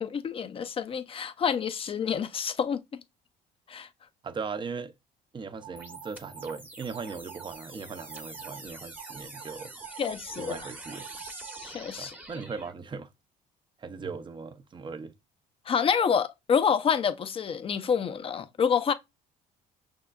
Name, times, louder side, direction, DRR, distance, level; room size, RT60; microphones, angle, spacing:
voice 1, 0.0-2.8 3.7-3.9 10.0-10.6 11.6-12.1 15.7-18.9, left 7 dB, 35° left, 0.5 m, -27 dB
voice 2, 4.2-4.9 5.3-9.7 10.4-11.1 12.0-13.1 13.8-15.1, right 5 dB, 30° right, 0.6 m, -38 dB
sound 1, 5.6-6.6 6.9-7.6 8.0-8.6 9.0-11.7, right 11 dB, 60° right, 1.0 m, -46 dB
sound 2, 5.8-12.8, right 2 dB, 10° right, 0.9 m, -45 dB
6.1 x 3.6 x 2.3 m
cardioid pair, 110°, 17 cm